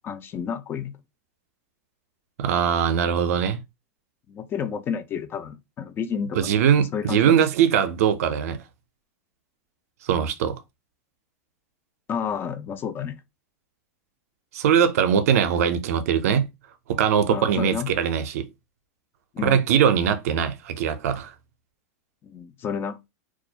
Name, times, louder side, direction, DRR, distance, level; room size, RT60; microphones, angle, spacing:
voice 1, 0.0-0.9 4.3-6.4 6.9-7.4 12.1-13.2 17.3-17.9 19.3-19.6 22.2-23.0, left 7 dB, 25° left, 0.3 m, -30 dB
voice 2, 2.4-3.6 6.3-8.6 10.0-10.6 14.5-16.5 16.9-18.5 19.4-21.3, right 8 dB, 70° right, 0.4 m, -21 dB
2.3 x 2.0 x 2.7 m
hypercardioid pair, 125°, 8 cm